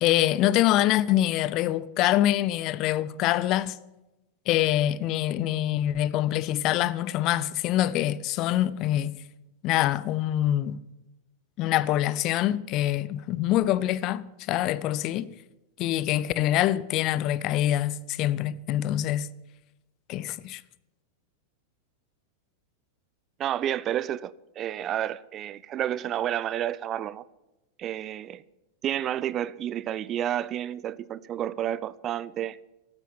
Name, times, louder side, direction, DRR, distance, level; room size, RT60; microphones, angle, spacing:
voice 1, 0.0-3.8 4.5-9.2 9.6-10.8 11.6-15.3 15.8-19.3 20.1-20.6, left 13 dB, 40° left, 0.6 m, -25 dB
voice 2, 23.4-27.2 27.8-28.4 28.8-32.6, right 11 dB, 30° right, 0.5 m, -30 dB
13.0 x 9.2 x 8.9 m
figure-of-eight pair, 90°, 0 cm